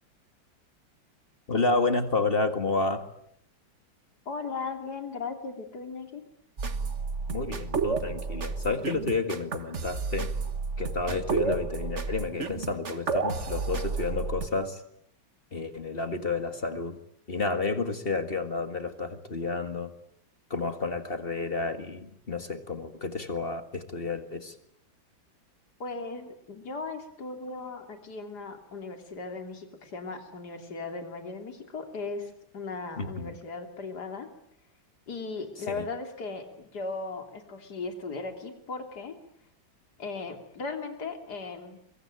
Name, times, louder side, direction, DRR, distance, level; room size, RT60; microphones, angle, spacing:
voice 1, 1.5-3.1 7.3-10.3 10.8-14.8 15.5-17.0 17.3-19.9 20.5-24.6 33.0-33.3 35.7-35.9, left 3 dB, 30° left, 9 dB, 1.9 m, -30 dB
voice 2, 4.3-6.2 25.8-34.3 35.1-39.1 40.0-41.8, left 4 dB, 55° left, 5 dB, 3.6 m, -37 dB
sound 1, 6.6-14.5, right 5 dB, 40° right, 1.6 m, -31 dB
24.5 x 23.5 x 9.0 m, 0.69 s
omnidirectional pair, 2.1 m